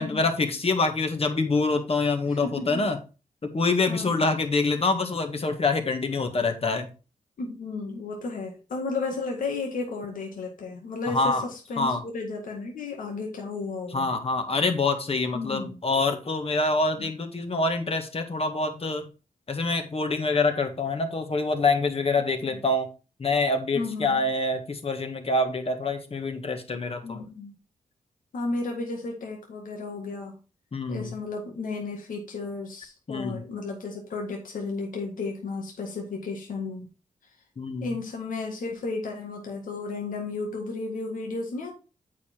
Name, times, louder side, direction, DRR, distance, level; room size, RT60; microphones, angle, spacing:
voice 1, 0.0-3.0 3.4-6.9 11.1-11.4 11.8-12.0 13.9-19.1 19.5-22.9 23.2-27.3 30.7-31.2 33.1-33.4 37.6-37.9, left 3 dB, 45° left, 5 dB, 1.8 m, -26 dB
voice 2, 2.3-2.8 3.9-4.2 7.4-14.1 15.3-15.8 17.0-17.1 22.4-22.6 23.7-24.2 27.0-27.5 28.3-30.4 30.9-36.9 37.8-41.7, left 3 dB, 80° left, 0 dB, 1.9 m, -33 dB
8.2 x 5.0 x 4.5 m, 0.32 s
cardioid pair, 65°, 14 cm